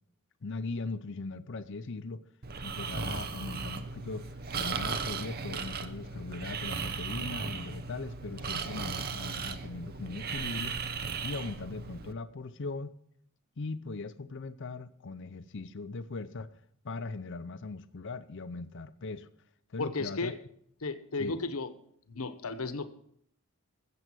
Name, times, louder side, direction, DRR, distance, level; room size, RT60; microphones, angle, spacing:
voice 1, 0.4-2.2 2.6-10.8 11.2-13.0 13.6-16.5 16.8-19.3 19.7-20.3 21.2-21.4, left 3 dB, 60° left, 0.6 m, -39 dB
Breathing, 2.4-12.1, right 5 dB, 45° right, 0.8 m, -36 dB
voice 2, 19.8-20.4 20.8-21.7 22.1-22.9, left 3 dB, 80° left, 1.0 m, -34 dB
14.5 x 7.8 x 6.2 m
head